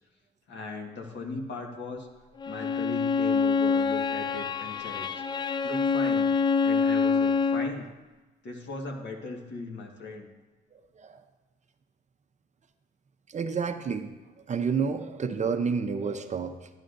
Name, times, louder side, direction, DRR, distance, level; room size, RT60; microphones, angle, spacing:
voice 1, 0.5-2.1 2.5-5.2 5.6-6.3 6.6-7.9 8.4-10.3, left 3 dB, 65° left, 1 dB, 1.5 m, -38 dB
Bowed string instrument, 2.4-7.8, left 5 dB, 20° left, 0.4 m, -26 dB
voice 2, 13.3-14.1 14.5-16.7, right 5 dB, 35° right, 7 dB, 0.6 m, -29 dB
11.5 x 10.5 x 2.6 m, 1.2 s
cardioid pair, 90°, 20 cm